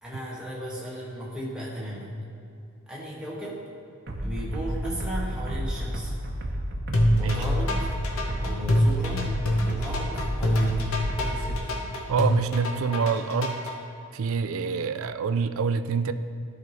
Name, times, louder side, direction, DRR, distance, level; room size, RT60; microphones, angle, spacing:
voice 1, 0.0-2.2 2.9-3.6 4.2-6.1 7.2-7.9 8.4-12.0, equal, 5° right, -6 dB, 1.3 m, -34 dB
sound 1, 4.1-11.6, equal, 50° right, 0.7 m, -31 dB
sound 2, 6.9-13.7, equal, 75° left, 1.0 m, -25 dB
voice 2, 12.1-13.6 14.1-16.1, right 5 dB, 70° right, 11 dB, 0.4 m, -26 dB
12.5 x 5.2 x 3.1 m, 2.6 s
head